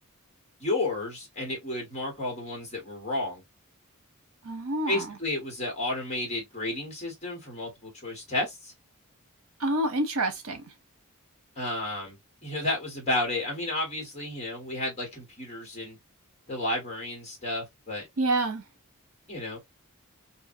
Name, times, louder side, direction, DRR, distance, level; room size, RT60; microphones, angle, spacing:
voice 1, 0.6-3.4 4.9-8.7 11.5-12.2 12.4-16.0 16.5-18.1 19.3-19.6, left 2 dB, 30° left, 1.5 m, -32 dB
voice 2, 4.4-5.1 9.6-10.6 18.2-18.6, right 2 dB, 70° right, 0.9 m, -27 dB
2.7 x 2.6 x 2.5 m
head